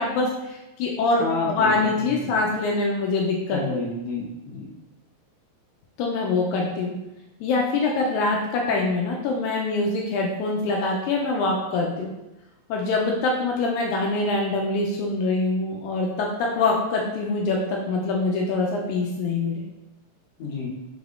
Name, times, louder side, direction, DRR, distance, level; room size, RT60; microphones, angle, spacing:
voice 1, 0.0-3.8 6.0-7.0 7.4-12.1 12.7-19.6, left 3 dB, 85° left, -1 dB, 2.0 m, -24 dB
voice 2, 1.2-2.3 3.5-4.7 20.4-20.7, left 3 dB, 70° left, -4 dB, 2.1 m, -30 dB
5.3 x 3.4 x 2.4 m, 0.95 s
omnidirectional pair, 3.3 m